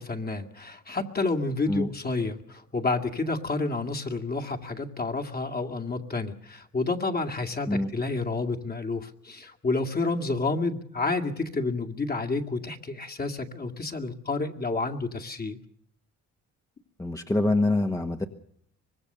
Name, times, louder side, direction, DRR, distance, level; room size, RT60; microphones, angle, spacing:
voice 1, 0.0-15.6, left 3 dB, 30° left, 4 dB, 2.3 m, -30 dB
voice 2, 17.0-18.3, left 2 dB, 10° left, 5 dB, 1.4 m, -25 dB
24.5 x 20.5 x 6.8 m, 0.68 s
cardioid pair, 90°, 30 cm